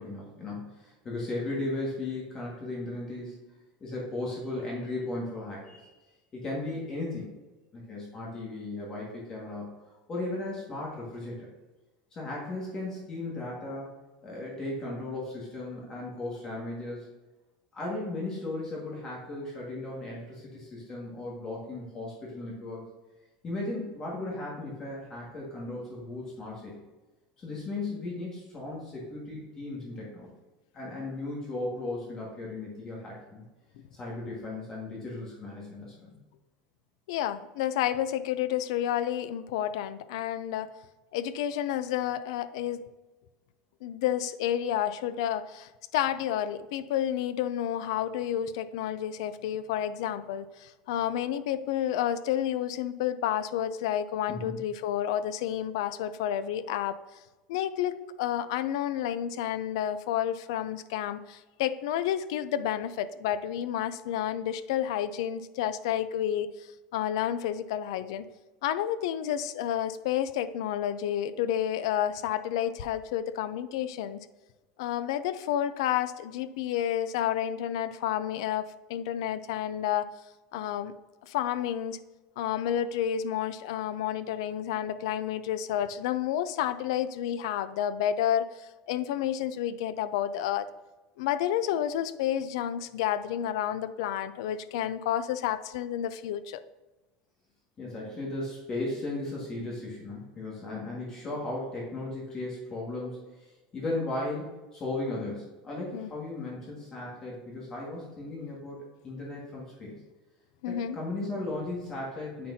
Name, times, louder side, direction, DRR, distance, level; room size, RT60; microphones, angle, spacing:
voice 1, 0.0-3.4 3.8-6.0 6.3-7.3 7.7-11.5 12.1-13.9 14.2-17.1 17.7-22.8 23.4-26.7 27.4-30.3 30.7-33.4 33.9-36.2 54.3-54.6 97.8-110.0 110.7-112.5, left 2 dB, 25° left, -4 dB, 1.8 m, -36 dB
voice 2, 37.1-40.7 41.1-42.8 43.8-57.0 57.5-68.2 68.6-74.2 74.8-80.1 80.5-80.9 81.2-82.0 82.4-90.7 91.2-96.6 105.9-106.1 110.6-111.0, left 10 dB, 85° left, 13 dB, 0.5 m, -30 dB
8.5 x 5.9 x 2.7 m, 1.1 s
cardioid pair, 165°, 3 cm